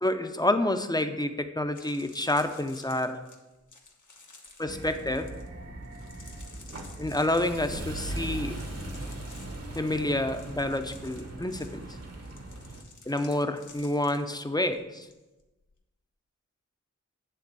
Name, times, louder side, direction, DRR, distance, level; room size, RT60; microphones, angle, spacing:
voice 1, 0.0-3.2 4.6-5.3 7.0-8.6 9.8-11.9 13.1-15.1, left 1 dB, 15° left, 8 dB, 0.6 m, -28 dB
sound 1, 1.6-15.1 15.4-15.7, left 3 dB, 75° left, 1.3 m, -53 dB
sound 2, 4.7-12.8, right 1 dB, 55° right, 1.1 m, -39 dB
10.0 x 3.6 x 6.8 m, 1.1 s
wide cardioid pair, 75°, 30 cm